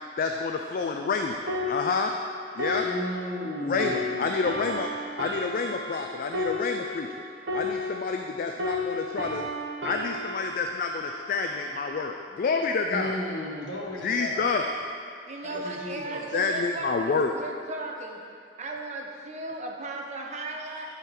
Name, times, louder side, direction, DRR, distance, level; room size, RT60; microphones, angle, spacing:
voice 1, 0.2-2.1 2.6-2.9 3.7-7.1 7.5-9.5 9.8-13.1 14.0-14.7 15.5-15.6 16.3-17.3 20.7-20.9, left 4 dB, 50° left, 3 dB, 0.4 m, -28 dB
sound 1, 1.5-8.3 8.6-12.2 12.8-13.0, left 1 dB, 90° right, 1.2 m, -34 dB
voice 2, 2.8-4.3 12.9-14.5 15.4-16.4, left 1 dB, 80° left, -3 dB, 1.4 m, -34 dB
voice 3, 15.3-18.2 18.6-20.9, right 2 dB, 40° right, 1 dB, 0.8 m, -36 dB
11.0 x 3.8 x 4.4 m, 2.3 s
head